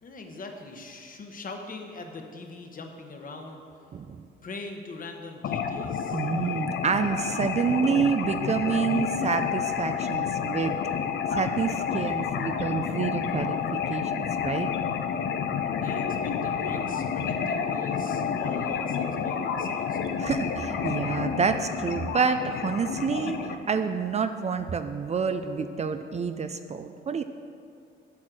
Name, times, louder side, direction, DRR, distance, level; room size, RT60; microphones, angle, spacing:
voice 1, 0.0-3.6 4.4-6.2 15.8-20.2, left 3 dB, 45° left, 4 dB, 1.2 m, -42 dB
voice 2, 3.9-4.2 6.1-10.8 11.3-14.7 20.2-27.2, right 6 dB, 35° right, 9 dB, 0.4 m, -28 dB
sound 1, 5.4-23.5, left 7 dB, 60° left, 0.7 m, -29 dB
8.5 x 6.4 x 6.1 m, 2.4 s
cardioid pair, 90°, 20 cm